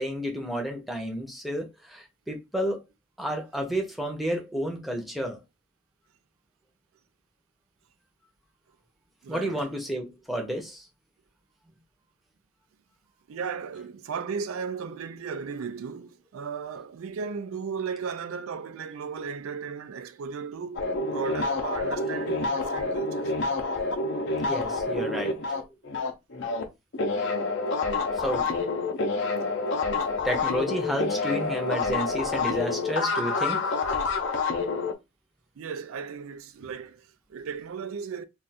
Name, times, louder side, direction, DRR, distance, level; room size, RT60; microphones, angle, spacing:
voice 1, 0.0-2.8 3.2-5.4 9.3-10.9 24.4-25.3 28.1-28.5 30.2-33.7, equal, ahead, 0.6 m, -31 dB
voice 2, 9.2-9.6 13.3-23.4 29.4-29.5 35.6-38.2, right 6 dB, 90° right, 0.4 m, -36 dB
sound 1, 20.8-26.7 26.9-34.9, left 3 dB, 60° left, 0.6 m, -28 dB
2.4 x 2.3 x 4.0 m
head